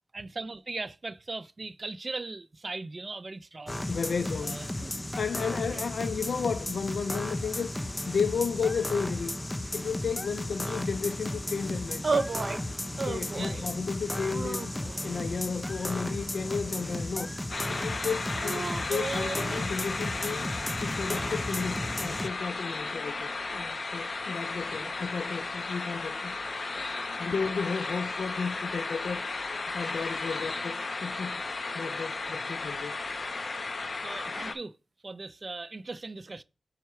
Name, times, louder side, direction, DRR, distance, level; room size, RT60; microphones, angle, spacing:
voice 1, 0.1-3.8 4.4-4.9 5.7-5.9 10.6-10.8 13.3-13.8 18.5-18.6 24.8-25.1 26.7-26.8 27.4-27.6 30.5-30.6 32.3-32.4 34.0-34.8 35.0-36.4, right 3 dB, 40° right, 0.5 m, -40 dB
sound 1, 3.7-22.3, left 1 dB, 15° left, 0.6 m, -34 dB
voice 2, 3.9-4.9 5.2-9.3 9.7-12.2 12.9-20.5 20.8-26.8 27.2-29.2 29.7-33.0, left 5 dB, 80° left, 0.4 m, -33 dB
sound 2, 12.0-12.6 13.0-13.7 14.3-15.2 15.9-16.9 18.3-19.7, right 4 dB, 55° right, 0.9 m, -34 dB
sound 3, 17.5-34.5, left 3 dB, 45° left, 0.7 m, -34 dB
5.5 x 4.5 x 4.7 m
wide cardioid pair, 95°, 0 cm